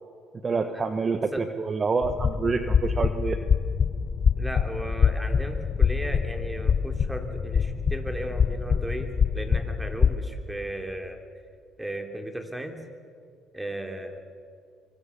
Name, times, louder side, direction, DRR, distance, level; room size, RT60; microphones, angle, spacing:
voice 1, 0.4-3.4, right 4 dB, 30° right, 8 dB, 1.3 m, -27 dB
voice 2, 1.1-1.5 4.4-11.2 11.8-12.7 13.5-14.2, right 1 dB, 5° right, 5 dB, 3.2 m, -36 dB
sound 1, 2.0-10.2, left 6 dB, 35° left, 0.9 m, -25 dB
24.5 x 24.0 x 7.1 m, 2.2 s
cardioid pair, 100°, 0 cm